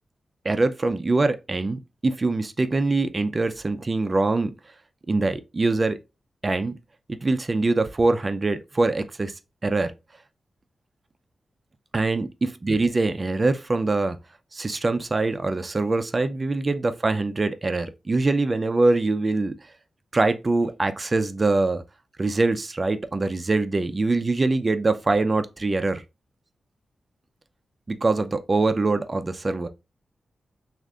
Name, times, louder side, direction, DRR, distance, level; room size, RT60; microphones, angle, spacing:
voice 1, 0.4-4.5 5.1-6.0 6.4-6.7 7.1-9.3 9.6-9.9 11.9-14.2 14.5-19.6 20.1-21.8 22.2-26.0 27.9-29.7, right 3 dB, 35° right, 0.4 m, -23 dB
6.3 x 2.5 x 2.4 m
wide cardioid pair, 100°, 0 cm